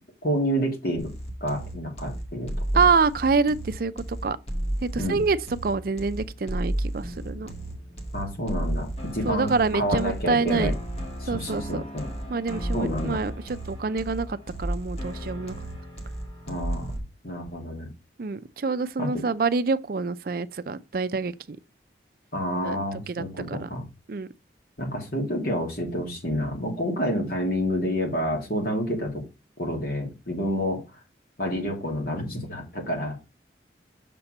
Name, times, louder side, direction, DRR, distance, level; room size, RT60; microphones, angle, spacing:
voice 1, 0.2-1.1 1.4-2.5 5.0-5.2 8.1-10.7 11.2-12.1 12.7-13.2 16.5-16.9 17.2-17.9 19.0-19.3 22.3-23.8 24.8-29.2 29.6-30.8 31.4-33.2, equal, 55° left, 3.0 m, -29 dB
sound 1, 1.0-17.0, right 1 dB, 35° left, 1.9 m, -33 dB
voice 2, 2.7-4.4 4.8-5.4 5.6-7.5 9.3-10.7 11.3-11.8 12.3-15.5 18.2-21.6 22.6-23.7 24.1-24.3, right 4 dB, 55° right, 0.5 m, -26 dB
6.8 x 4.3 x 6.6 m
head